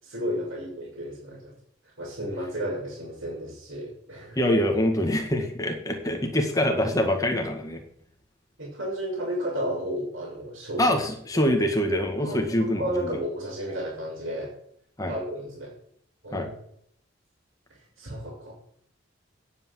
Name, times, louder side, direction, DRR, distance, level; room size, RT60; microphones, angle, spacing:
voice 1, 0.0-1.5 2.0-4.4 8.6-11.0 11.3-11.4 12.2-14.5 15.1-15.7 16.2-16.5 18.0-18.5, equal, 75° right, -8 dB, 5.3 m, -32 dB
voice 2, 4.4-7.8 10.8-13.1 15.0-15.1 16.3-16.5, left 1 dB, 15° left, 3 dB, 1.7 m, -25 dB
9.6 x 8.4 x 7.6 m, 0.67 s
head